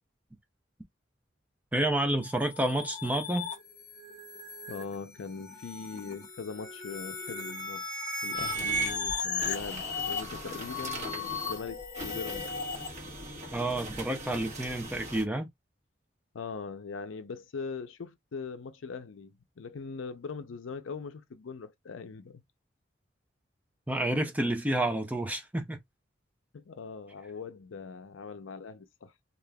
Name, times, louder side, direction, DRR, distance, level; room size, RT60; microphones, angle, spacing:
voice 1, 1.7-3.5 13.5-15.5 23.9-25.8, right 1 dB, 10° right, 0.5 m, -29 dB
sound 1, 2.2-12.9, left 3 dB, 40° left, 1.0 m, -36 dB
voice 2, 4.7-7.9 8.2-12.5 16.3-22.4 26.5-29.1, left 5 dB, 85° left, 0.5 m, -41 dB
sound 2, 8.3-15.2, right 1 dB, 35° right, 1.1 m, -42 dB
3.5 x 2.4 x 2.2 m
head